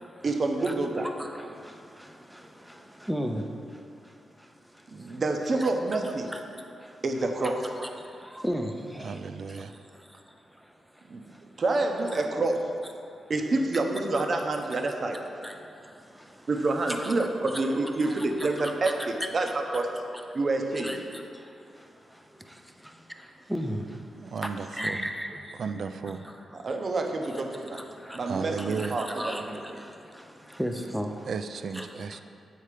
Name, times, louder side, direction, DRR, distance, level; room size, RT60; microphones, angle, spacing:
voice 1, 0.2-1.1 4.9-6.3 7.0-7.6 11.1-11.2 11.6-12.6 13.3-15.2 16.5-19.9 20.3-20.9 26.5-27.8 28.1-29.6, right 2 dB, 45° right, 3 dB, 0.8 m, -28 dB
voice 2, 1.0-1.3 3.1-3.4 7.8-7.9 8.4-8.7 12.1-12.2 15.4-15.5 16.9-17.1 17.5-17.6 18.0-18.3 18.8-18.9 20.8-21.0 23.5-23.8 24.8-25.3 28.8-29.4 30.6-31.1 31.8-31.9, equal, 5° right, 4 dB, 0.6 m, -32 dB
voice 3, 9.0-9.7 24.2-25.0 25.5-26.2 28.3-29.0 31.3-32.2, right 5 dB, 65° right, 9 dB, 0.4 m, -34 dB
8.3 x 4.3 x 5.0 m, 2.5 s
cardioid pair, 85°, 0 cm